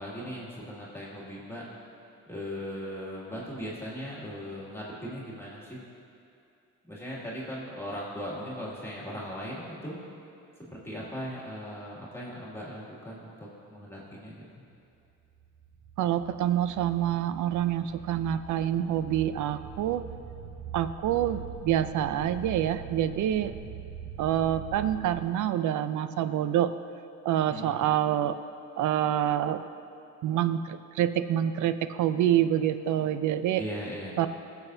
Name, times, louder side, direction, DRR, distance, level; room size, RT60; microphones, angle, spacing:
voice 1, 0.0-1.6 2.3-5.8 6.9-10.0 10.6-14.4 27.5-27.9 33.6-34.2, equal, 10° left, -6 dB, 2.3 m, -38 dB
sound 1, 15.3-25.2, right 7 dB, 40° right, 1.0 m, -43 dB
voice 2, 16.0-20.0 20.7-23.5 24.2-26.7 27.2-28.4 28.8-29.6 30.2-33.6 34.2-34.3, right 11 dB, 75° right, 11 dB, 0.5 m, -27 dB
20.0 x 7.0 x 2.7 m, 2.6 s
cardioid pair, 90°, 30 cm